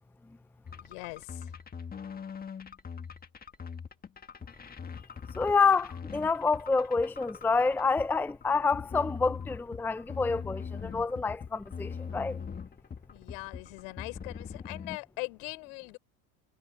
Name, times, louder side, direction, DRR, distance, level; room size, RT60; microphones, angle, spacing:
voice 1, 0.7-1.5 13.1-16.0, left 34 dB, 70° left, 5.2 m, -41 dB
sound 1, 0.7-15.0, left 6 dB, 20° left, 1.7 m, -42 dB
voice 2, 5.4-12.4, left 4 dB, 5° left, 0.6 m, -28 dB
supercardioid pair, 100°, 40 cm